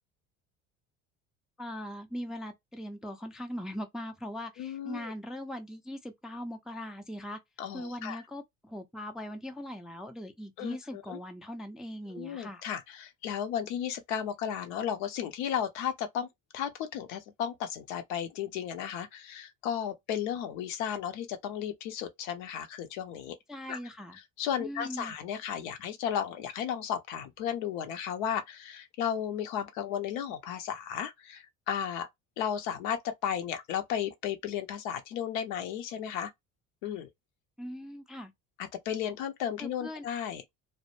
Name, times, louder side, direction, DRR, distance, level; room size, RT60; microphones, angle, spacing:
voice 1, 1.6-7.4 7.7-12.6 23.5-24.2 24.6-25.1 37.6-38.3 39.6-40.0, equal, ahead, 0.4 m, -40 dB
voice 2, 4.6-5.1 7.6-8.2 10.6-11.2 12.1-16.3 16.5-23.4 23.7-23.8 24.4-32.1 32.4-36.3 36.8-37.1 38.6-40.4, left 9 dB, 75° left, 0.7 m, -34 dB
2.1 x 2.0 x 2.9 m
hypercardioid pair, 75°, 40 cm